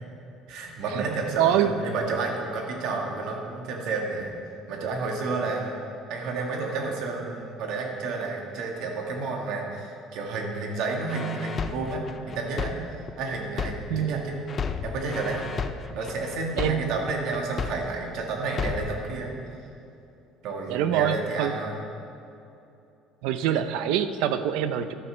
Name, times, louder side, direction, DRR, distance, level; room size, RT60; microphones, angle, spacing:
voice 1, 0.5-4.3 4.7-5.8 6.1-12.7 13.2-14.4 14.8-15.4 15.9-19.3 20.4-21.8, right 3 dB, 60° right, 0 dB, 1.6 m, -31 dB
voice 2, 1.3-1.7 13.9-14.2 16.6-16.8 20.7-21.5 23.2-24.9, right 10 dB, 85° right, 11 dB, 0.6 m, -25 dB
sound 1, 11.1-14.1 14.5-18.1 18.5-19.1, left 6 dB, 25° left, 0.4 m, -33 dB
12.0 x 11.5 x 3.3 m, 2.7 s
cardioid pair, 180°, 0 cm